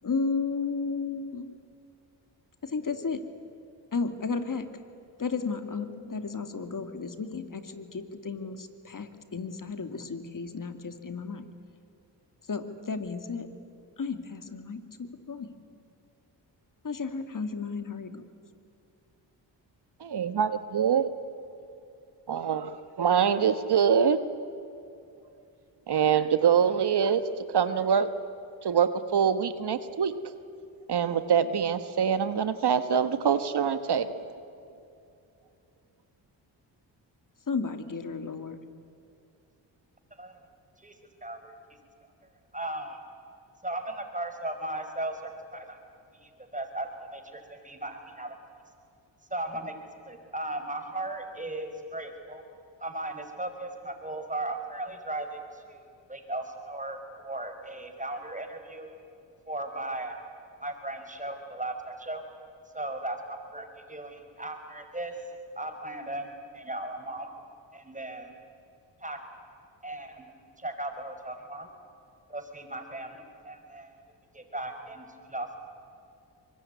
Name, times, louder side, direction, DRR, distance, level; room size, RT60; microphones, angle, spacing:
voice 1, 0.0-1.5 2.6-3.2 3.9-4.8 5.2-11.5 12.4-13.5 14.0-15.5 16.8-18.3 37.5-38.6, left 4 dB, 45° left, 9 dB, 2.4 m, -33 dB
voice 2, 20.0-21.1 22.3-24.2 25.9-27.2 27.5-28.1 28.6-30.1 30.9-34.1, right 7 dB, 60° right, 11 dB, 1.4 m, -24 dB
voice 3, 41.2-41.5 42.5-43.0 43.6-45.8 46.2-48.3 49.3-49.7 50.0-52.4 52.8-55.8 56.1-58.9 59.5-62.2 62.7-65.2 65.5-66.3 66.5-67.3 67.7-68.3 69.0-69.2 69.8-70.2 70.6-71.7 72.3-74.0 74.3-75.6, right 1 dB, 15° right, 6 dB, 5.2 m, -37 dB
24.0 x 21.5 x 9.5 m, 2.6 s
supercardioid pair, 50°, 46 cm